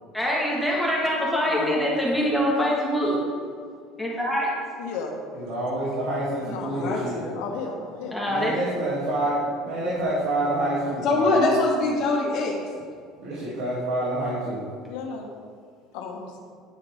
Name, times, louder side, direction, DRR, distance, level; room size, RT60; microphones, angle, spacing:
voice 1, 0.1-3.1 4.0-4.5 8.1-8.5, equal, ahead, -5 dB, 1.8 m, -24 dB
voice 2, 1.5-1.8 6.6-7.3 11.0-12.5, left 2 dB, 40° left, -6 dB, 1.4 m, -23 dB
voice 3, 4.8-5.1 6.4-6.8 7.3-8.2 14.9-15.3 15.9-16.4, left 5 dB, 85° left, 1 dB, 1.4 m, -34 dB
voice 4, 5.3-7.2 8.3-11.4 13.2-14.7, right 1 dB, 75° right, -7 dB, 2.8 m, -27 dB
9.8 x 9.4 x 3.7 m, 2.2 s
cardioid pair, 165°, 0 cm